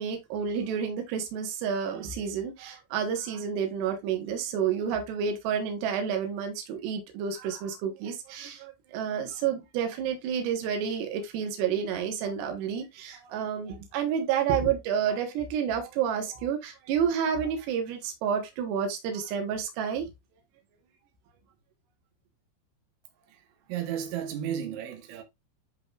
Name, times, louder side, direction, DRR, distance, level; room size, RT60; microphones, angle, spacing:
voice 1, 0.0-20.1, right 7 dB, 70° right, 3.4 m, -30 dB
voice 2, 23.7-25.2, right 9 dB, 85° right, 3.5 m, -33 dB
11.0 x 4.1 x 2.4 m
omnidirectional pair, 5.2 m